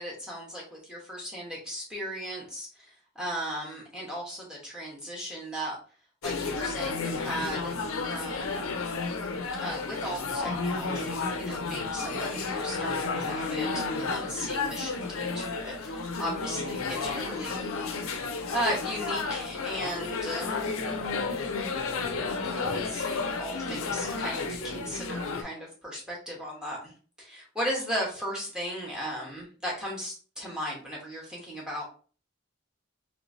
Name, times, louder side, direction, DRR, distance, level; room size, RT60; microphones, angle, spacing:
voice 1, 0.0-5.8 6.2-7.8 8.1-8.7 9.6-18.0 18.5-20.8 22.4-31.8, equal, 5° right, -3 dB, 1.1 m, -36 dB
sound 1, 6.2-25.4, left 4 dB, 85° left, 0.5 m, -32 dB
3.1 x 3.1 x 2.6 m, 0.40 s
head